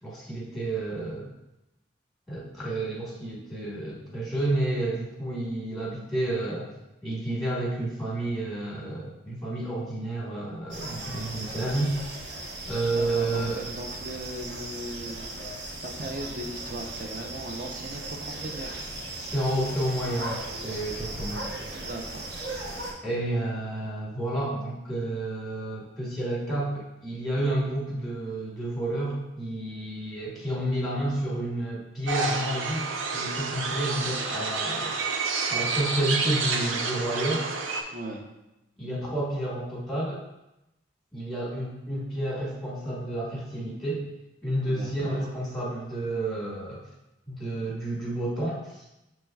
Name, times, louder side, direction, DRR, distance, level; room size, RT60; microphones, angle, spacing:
voice 1, 0.0-1.3 2.3-6.7 7.0-12.2 12.7-13.6 19.2-21.5 23.0-34.9 35.5-37.4 38.8-40.2 41.1-44.1 44.4-46.8 47.3-48.8, right 1 dB, ahead, -6 dB, 1.3 m, -30 dB
sound 1, 10.7-22.9, right 2 dB, 70° right, 0.9 m, -37 dB
voice 2, 12.9-18.8 21.7-22.3 37.9-38.2 44.6-45.3, right 1 dB, 45° right, 2 dB, 0.6 m, -38 dB
sound 2, 32.1-37.8, right 4 dB, 85° right, 0.5 m, -29 dB
7.4 x 3.1 x 2.3 m, 0.93 s
head